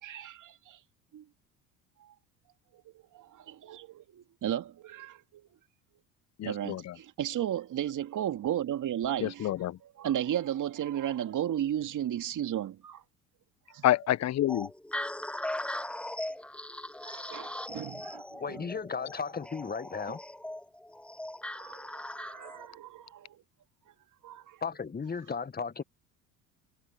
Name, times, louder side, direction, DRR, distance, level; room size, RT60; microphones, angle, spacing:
voice 1, 0.0-0.8 1.1-1.2 2.0-2.1 3.1-5.5 6.4-9.5 10.0-13.0 13.7-13.8 17.0-18.6 21.5-23.4 24.2-24.6, right 11 dB, 45° right, 2.3 m, -34 dB
voice 2, 6.4-7.0 9.2-9.8 13.8-14.7, left 13 dB, 40° left, 0.9 m, -28 dB
sound 1, 14.5-22.7, left 1 dB, 5° left, 0.6 m, -39 dB
voice 3, 18.4-20.2 24.6-25.8, left 5 dB, 20° left, 1.5 m, -35 dB
hypercardioid pair, 65°, 43 cm